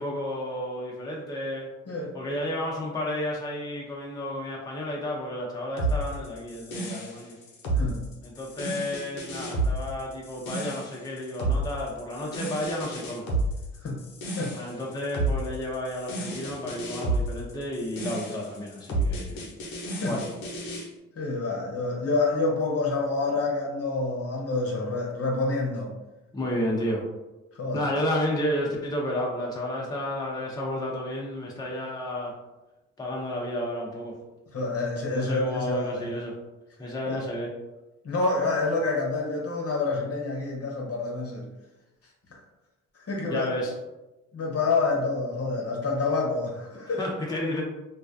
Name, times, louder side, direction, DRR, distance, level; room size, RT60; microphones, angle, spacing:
voice 1, 0.0-1.7 2.1-7.4 8.2-13.3 14.5-19.4 20.0-20.3 26.3-27.1 27.7-32.4 33.0-34.2 35.1-36.4 36.8-37.6 43.3-43.7 47.0-47.6, left 1 dB, 10° left, -3 dB, 0.6 m, -31 dB
sound 1, 5.8-20.9, right 2 dB, 90° left, 0.6 m, -31 dB
voice 2, 21.1-25.9 27.6-27.8 34.5-36.1 37.1-37.2 38.0-41.5 43.1-43.7 44.3-47.0, left 3 dB, 45° left, -1 dB, 0.8 m, -28 dB
2.4 x 2.2 x 2.5 m, 1.0 s
supercardioid pair, 55°, 32 cm